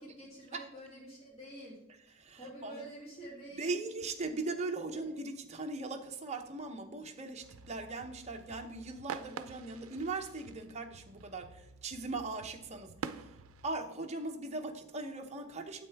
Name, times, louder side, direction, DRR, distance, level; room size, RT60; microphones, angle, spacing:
voice 1, 0.0-3.8 5.1-5.2, right 1 dB, 30° left, -4 dB, 2.6 m, -48 dB
voice 2, 2.2-2.8 3.5-13.3 13.6-15.9, right 3 dB, 30° right, 4 dB, 0.8 m, -39 dB
sound 1, 7.4-13.7, right 5 dB, 80° right, 0.5 m, -47 dB
9.0 x 7.8 x 3.4 m, 0.86 s
head